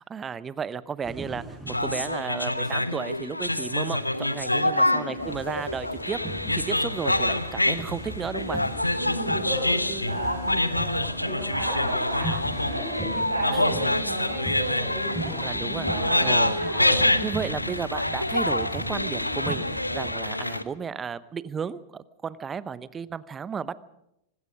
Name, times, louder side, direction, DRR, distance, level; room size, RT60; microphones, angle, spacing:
voice 1, 0.0-8.6 13.5-13.9 15.4-15.9 16.2-16.6 17.2-23.8, right 6 dB, 20° right, 18 dB, 0.8 m, -33 dB
sound 1, 1.0-2.4 5.2-20.1, right 1 dB, ahead, 6.9 m, -39 dB
sound 2, 1.7-20.6, left 1 dB, 85° left, 1.0 m, -26 dB
voice 2, 4.7-5.6 8.9-17.4, right 1 dB, 85° right, 1 dB, 5.1 m, -33 dB
24.5 x 20.0 x 5.2 m, 0.82 s
figure-of-eight pair, 90°, 0 cm